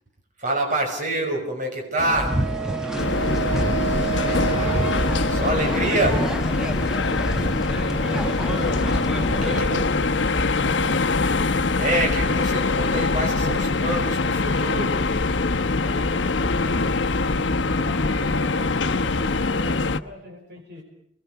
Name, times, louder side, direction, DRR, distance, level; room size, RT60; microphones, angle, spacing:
voice 1, 0.4-2.4 5.3-6.3 9.4-9.8 11.8-15.1, right 1 dB, 45° right, 1 dB, 6.5 m, -26 dB
sound 1, 2.0-9.6, equal, 5° right, 1.6 m, -28 dB
Wind instrument woodwind instrument, 2.2-6.3, right 9 dB, 75° right, 5.6 m, -31 dB
voice 2, 2.6-4.6 6.6-8.7 9.1-11.2 15.8-17.0 17.3-20.8, equal, 60° right, 2 dB, 5.9 m, -40 dB
sound 2, 3.0-20.0, left 3 dB, 75° left, 1.0 m, -23 dB
29.5 x 21.5 x 6.9 m, 0.70 s
head